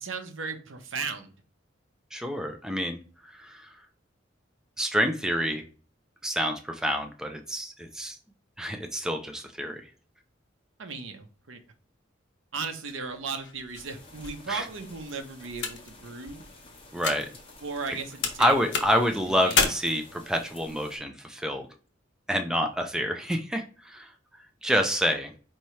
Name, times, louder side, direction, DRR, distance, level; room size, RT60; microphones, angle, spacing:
voice 1, 0.0-1.3 10.8-11.6 12.5-16.4 17.6-18.6 18.9-19.6, right 4 dB, 90° right, 7 dB, 0.8 m, -36 dB
voice 2, 2.1-3.7 4.8-5.6 6.2-8.2 8.6-9.8 14.5-14.7 16.9-17.3 18.4-21.7 22.3-24.1 24.6-25.3, equal, 5° right, 5 dB, 0.4 m, -28 dB
sound 1, 12.9-18.0 18.2-19.7, left 5 dB, 65° left, 0.7 m, -32 dB
sound 2, 13.8-21.0, left 2 dB, 30° left, 1.0 m, -51 dB
4.5 x 2.8 x 3.1 m, 0.39 s
head